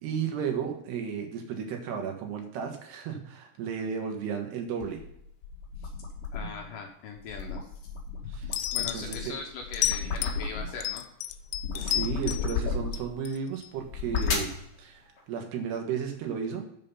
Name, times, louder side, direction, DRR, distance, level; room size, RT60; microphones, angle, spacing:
voice 1, 0.0-5.0 8.3-8.5 8.9-9.4 11.8-14.5 14.8-16.7, right 7 dB, 80° right, 3 dB, 3.5 m, -34 dB
sound 1, 4.8-6.7 7.2-10.9 11.3-13.2 13.8-14.6, left 5 dB, 45° left, 2.2 m, -33 dB
voice 2, 6.3-7.9 8.2-11.0, left 4 dB, 65° left, 2 dB, 2.3 m, -41 dB
sound 2, 8.5-9.2 9.7-10.4 10.8-12.6 12.9-13.7 14.2-14.3, left 13 dB, 85° left, 2.7 m, -31 dB
7.5 x 7.3 x 5.5 m, 0.75 s
omnidirectional pair, 4.8 m